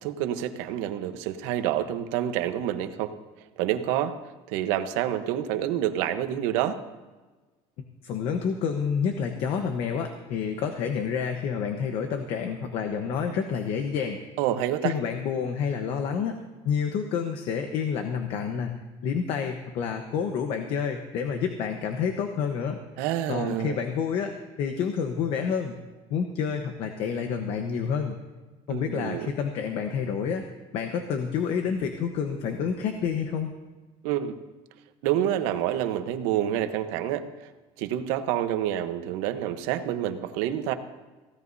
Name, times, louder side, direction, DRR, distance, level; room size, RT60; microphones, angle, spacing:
voice 1, 0.0-3.1 3.6-4.1 4.5-6.8 14.4-14.9 23.0-23.8 28.7-29.3 34.0-34.3 35.0-37.3 37.8-40.7, right 11 dB, 90° right, 8 dB, 1.1 m, -28 dB
voice 2, 8.0-14.2 14.8-16.4 16.6-18.7 19.0-22.8 23.3-24.3 24.6-25.8 26.1-28.2 28.7-30.4 30.7-33.5, left 6 dB, 50° left, 5 dB, 1.1 m, -28 dB
24.0 x 16.5 x 2.7 m, 1.2 s
cardioid pair, 175°, 12 cm